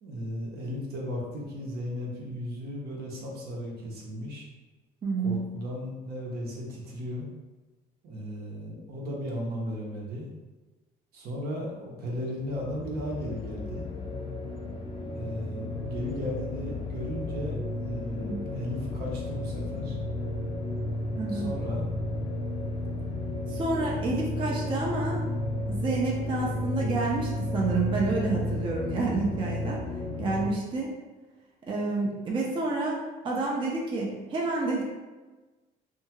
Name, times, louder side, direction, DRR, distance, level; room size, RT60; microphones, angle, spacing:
voice 1, 0.0-4.5 5.2-7.3 8.0-10.3 11.1-13.9 15.1-20.0 21.3-21.9, equal, 70° right, -2 dB, 0.8 m, -35 dB
voice 2, 5.0-5.4 18.2-18.4 21.2-21.5 23.5-25.2 25.7-29.8 30.2-31.0 31.7-34.8, right 3 dB, 30° right, -3 dB, 0.5 m, -29 dB
sound 1, 12.4-30.5, left 2 dB, 30° left, 0.4 m, -33 dB
2.7 x 2.3 x 2.8 m, 1.2 s
cardioid pair, 110°, 17 cm